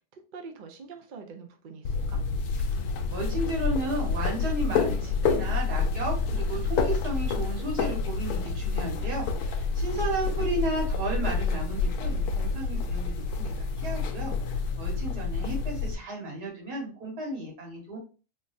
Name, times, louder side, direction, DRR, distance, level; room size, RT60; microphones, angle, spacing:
voice 1, 0.0-2.2 9.9-10.5, right 5 dB, 60° right, 5 dB, 0.5 m, -46 dB
sound 1, 1.8-15.9, left 4 dB, 80° left, 1.1 m, -28 dB
voice 2, 3.1-13.5 13.8-14.3 14.8-18.0, right 2 dB, 90° right, -2 dB, 2.1 m, -33 dB
3.8 x 2.4 x 2.5 m, 0.34 s
omnidirectional pair, 1.6 m